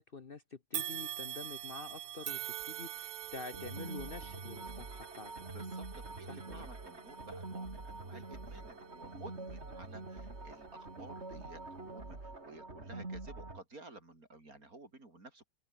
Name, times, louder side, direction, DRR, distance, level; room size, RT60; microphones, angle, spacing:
voice 1, 0.0-5.3 6.3-6.6, left 4 dB, 40° left, 1.2 m, -47 dB
sound 1, 0.7-10.0 10.6-10.7 11.7-11.8, right 12 dB, 80° right, 1.4 m, -45 dB
sound 2, 3.5-13.6, right 2 dB, 40° right, 4.0 m, -45 dB
voice 2, 5.5-15.5, right 2 dB, 60° right, 5.8 m, -53 dB
omnidirectional pair, 1.7 m